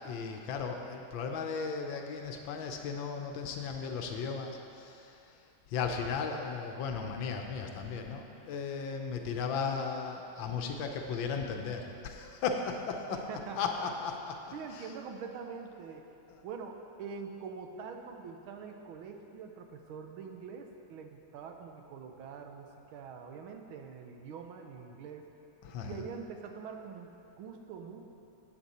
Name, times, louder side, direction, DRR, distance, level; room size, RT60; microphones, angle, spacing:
voice 1, 0.0-5.3 5.7-13.2 13.6-14.3 14.7-14.9 16.3-16.4 25.6-26.1, left 5 dB, 70° left, 3 dB, 1.4 m, -36 dB
voice 2, 13.1-13.9 14.5-16.0 16.4-25.3 25.8-28.0, right 6 dB, 80° right, 4 dB, 1.5 m, -44 dB
10.0 x 8.1 x 4.2 m, 2.7 s
omnidirectional pair, 2.3 m